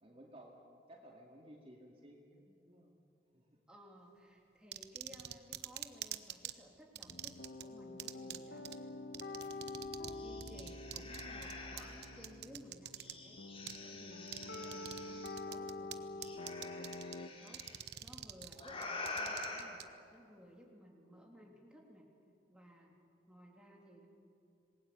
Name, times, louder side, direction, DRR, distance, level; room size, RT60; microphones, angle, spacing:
voice 1, 0.0-0.6 0.9-3.0 3.3-3.6, right 1 dB, 35° right, 0 dB, 2.4 m, -57 dB
voice 2, 3.7-8.9 10.1-13.4 13.8-16.9 17.2-19.8 20.1-22.1 22.5-23.0 23.3-24.1, equal, 5° right, -1 dB, 3.5 m, -58 dB
sound 1, 4.7-6.5 7.0-7.6 8.0-8.4 8.7-8.8 9.1-10.2 10.4-13.1 13.7-13.8 14.3-15.0 15.3-16.0 16.2-17.2 17.5-19.8, right 12 dB, 65° right, 1.1 m, -45 dB
sound 2, 7.1-17.3, left 2 dB, 70° left, 1.4 m, -47 dB
sound 3, 9.4-9.5 9.9-12.2 13.0-15.4 16.2-17.8 18.6-19.6, left 2 dB, 30° left, 3.8 m, -46 dB
27.0 x 20.5 x 8.6 m, 2.5 s
head